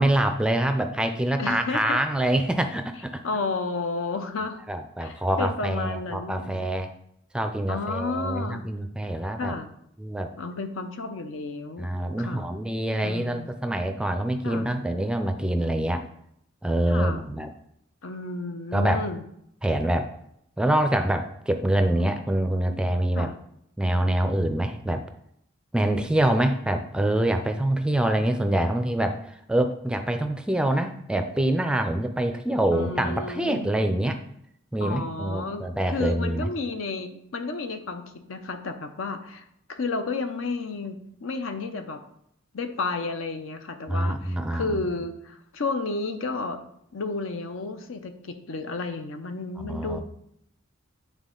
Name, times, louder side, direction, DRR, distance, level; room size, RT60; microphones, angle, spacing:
voice 1, 0.0-3.2 4.7-6.9 7.3-9.5 10.0-10.3 11.8-16.0 16.6-17.5 18.7-19.0 19.6-20.1 20.6-23.3 23.8-25.0 25.7-34.2 34.7-36.5 43.9-44.7 49.6-50.0, right 1 dB, 5° right, 7 dB, 0.4 m, -25 dB
voice 2, 1.4-2.0 3.2-4.6 5.0-6.7 7.7-8.7 9.4-9.7 10.4-11.9 12.2-12.5 13.0-13.5 14.4-14.7 16.9-17.2 18.0-19.2 23.1-23.3 32.7-33.7 34.8-42.0 42.5-46.6 46.9-50.0, left 3 dB, 80° left, 8 dB, 0.7 m, -32 dB
9.1 x 3.6 x 3.8 m, 0.73 s
head